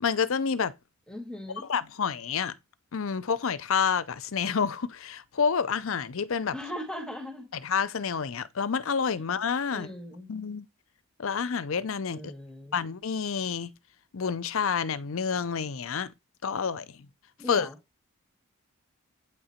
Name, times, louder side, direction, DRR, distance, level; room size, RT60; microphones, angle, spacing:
voice 1, 0.0-0.7 1.6-2.5 2.9-6.5 7.6-9.9 10.3-10.7 11.2-12.3 12.7-13.7 14.1-16.1 16.4-17.1 17.5-17.7, left 6 dB, 65° left, 0.6 m, -29 dB
voice 2, 1.1-1.7 6.5-7.5 9.7-10.3 12.1-12.8 17.4-17.8, equal, 5° left, 1.9 m, -39 dB
8.7 x 3.8 x 4.4 m
head